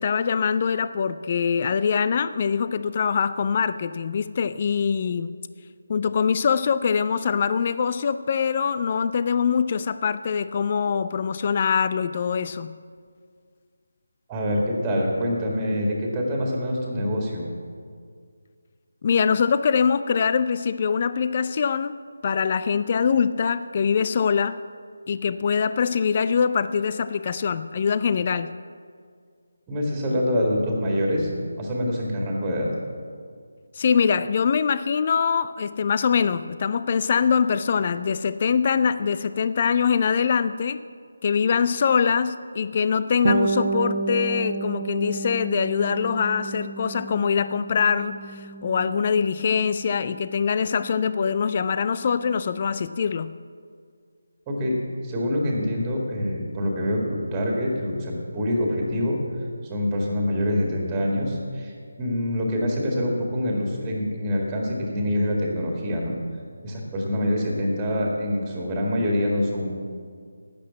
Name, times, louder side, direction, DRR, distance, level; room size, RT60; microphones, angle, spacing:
voice 1, 0.0-5.3 5.9-12.7 19.0-22.0 22.2-24.6 25.1-28.5 33.8-40.8 41.2-53.3, left 6 dB, 35° left, 14 dB, 0.4 m, -23 dB
voice 2, 14.3-17.5 29.7-31.3 31.6-32.7 54.5-54.8 55.0-59.2 59.7-61.7 62.0-66.1 66.6-69.7, left 1 dB, 15° right, -1 dB, 2.1 m, -25 dB
Bass guitar, 43.2-52.9, right 3 dB, 50° right, 1.1 m, -32 dB
12.0 x 8.4 x 8.6 m, 2.1 s
figure-of-eight pair, 155°, 0 cm